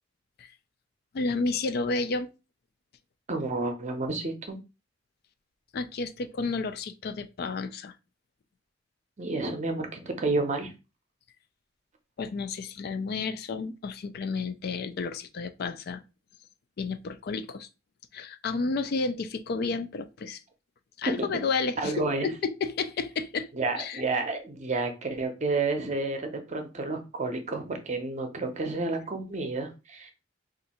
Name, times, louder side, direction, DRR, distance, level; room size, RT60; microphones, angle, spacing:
voice 1, 1.1-2.3 5.7-7.9 12.2-16.0 16.8-17.7 18.1-20.4 21.0-23.5 23.8-24.0, left 4 dB, 55° left, 0.4 m, -31 dB
voice 2, 3.3-4.6 9.2-10.7 21.1-21.3 21.8-22.3 23.5-30.1, right 3 dB, 40° right, 0.6 m, -30 dB
2.7 x 2.5 x 4.1 m
head